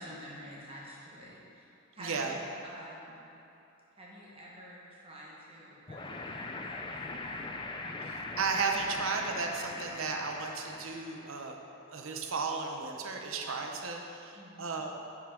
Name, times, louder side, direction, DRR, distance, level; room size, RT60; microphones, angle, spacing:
voice 1, 0.0-1.7 1.9-3.2 4.0-7.5 14.3-14.7, equal, 25° right, -5 dB, 1.4 m, -49 dB
voice 2, 2.0-2.4 8.0-11.6 11.9-14.9, right 4 dB, 70° right, 2 dB, 0.7 m, -34 dB
sound 1, 5.9-11.3, left 2 dB, 25° left, 0.4 m, -41 dB
9.1 x 5.7 x 3.7 m, 2.9 s
head